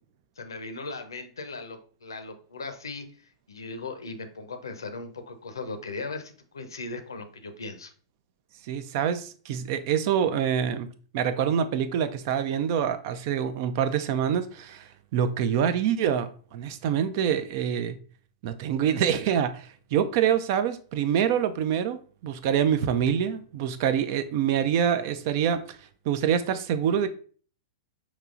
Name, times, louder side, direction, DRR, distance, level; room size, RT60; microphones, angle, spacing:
voice 1, 0.4-7.9, left 3 dB, 80° left, 0.6 m, -38 dB
voice 2, 8.7-10.9 11.1-18.0 18.4-25.8 26.1-27.1, right 8 dB, 50° right, 0.4 m, -26 dB
5.4 x 3.0 x 2.4 m
figure-of-eight pair, 100°, 2 cm